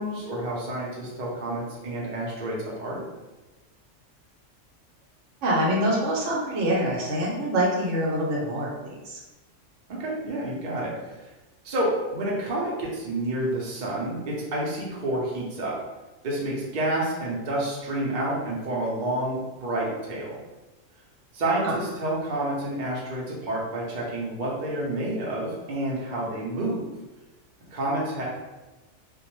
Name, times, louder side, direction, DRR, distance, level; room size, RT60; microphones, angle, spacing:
voice 1, 0.0-3.0 9.9-11.3 11.6-15.8 16.2-20.4 21.3-26.9 27.7-28.2, right 1 dB, 50° right, -4 dB, 0.6 m, -29 dB
voice 2, 5.4-9.2 21.6-21.8, equal, 75° right, -3 dB, 0.9 m, -25 dB
2.1 x 2.0 x 2.9 m, 1.1 s
omnidirectional pair, 1.3 m